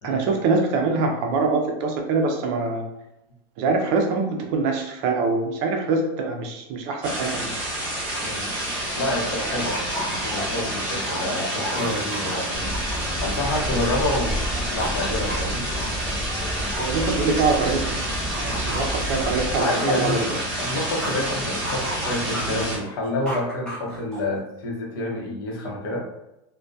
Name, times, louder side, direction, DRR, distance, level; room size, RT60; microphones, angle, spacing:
voice 1, 0.0-2.9 3.6-7.5 16.8-18.0 18.4-20.3, right 4 dB, 45° right, 2 dB, 0.4 m, -24 dB
sound 1, 7.0-22.8, right 1 dB, 15° right, 1.0 m, -29 dB
voice 2, 8.2-8.5 9.0-15.7 19.5-20.2 20.6-26.0, left 1 dB, 75° left, -1 dB, 0.8 m, -28 dB
sound 2, 8.3-8.4 8.6-14.1 14.4-17.9 18.3-21.3 21.6-24.4, equal, 5° left, 0.5 m, -35 dB
sound 3, 12.5-19.6, equal, 30° left, 0.9 m, -31 dB
2.6 x 2.1 x 2.2 m, 0.90 s
supercardioid pair, 170°, 12 cm